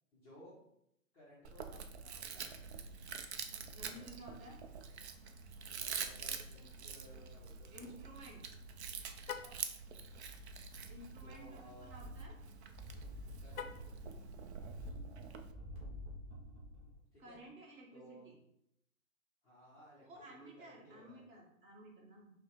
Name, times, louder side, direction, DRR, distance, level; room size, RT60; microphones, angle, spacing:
voice 1, 0.1-0.6 1.1-2.6 3.9-4.1 5.8-8.0 9.4-9.6 11.2-12.0 13.4-14.0 17.1-17.4 17.9-18.3 19.4-21.2, equal, 5° left, -11 dB, 0.4 m, -59 dB
Chewing mastication, 1.4-15.5, right 6 dB, 55° right, 0.5 m, -46 dB
voice 2, 3.7-4.6 7.7-8.4 10.9-12.3 17.2-18.4 20.0-22.3, right 1 dB, 40° right, -1 dB, 1.2 m, -54 dB
Car, 9.2-9.6 13.5-14.0, left 8 dB, 85° left, 0.5 m, -45 dB
sound 1, 10.0-11.4 11.7-17.0 17.3-17.4, left 1 dB, 15° right, 0.9 m, -50 dB
5.4 x 2.0 x 3.4 m, 0.77 s
hypercardioid pair, 125°, 41 cm